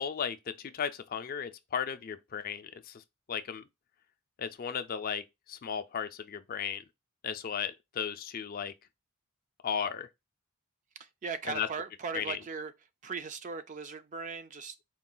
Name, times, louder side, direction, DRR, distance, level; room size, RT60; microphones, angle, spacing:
voice 1, 0.0-3.0 3.3-3.6 4.4-6.8 7.2-8.7 9.6-10.1 11.4-11.7 12.1-12.4, left 7 dB, 40° left, 0.4 m, -35 dB
voice 2, 11.2-12.7 13.0-14.8, right 5 dB, 35° right, 0.3 m, -38 dB
4.5 x 2.4 x 3.7 m
head